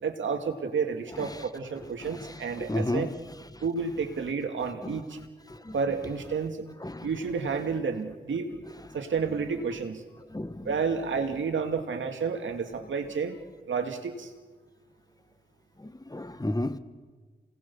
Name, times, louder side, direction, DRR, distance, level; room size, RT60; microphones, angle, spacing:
voice 1, 0.0-3.1 3.6-5.2 5.7-6.7 7.0-8.5 8.9-10.0 10.6-13.4 13.7-14.3, right 5 dB, 80° right, 2.3 m, -30 dB
voice 2, 2.7-3.1 5.7-5.8 6.8-7.0 10.3-10.7 16.1-16.8, left 1 dB, 20° left, 1.6 m, -30 dB
27.5 x 19.0 x 7.1 m
cardioid pair, 40°, 19 cm